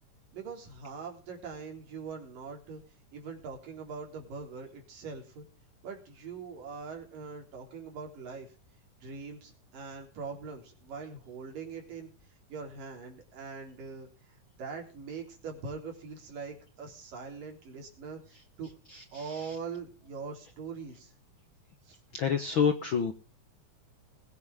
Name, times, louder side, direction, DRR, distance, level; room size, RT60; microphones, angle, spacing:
voice 1, 0.3-2.8 3.1-5.5 5.8-8.5 9.0-12.1 12.5-18.7 19.1-21.1 21.9-22.0, right 5 dB, 85° right, 2 dB, 5.2 m, -42 dB
voice 2, 22.1-23.1, left 7 dB, 65° left, 8 dB, 1.3 m, -27 dB
21.0 x 9.3 x 3.6 m, 0.36 s
omnidirectional pair, 3.8 m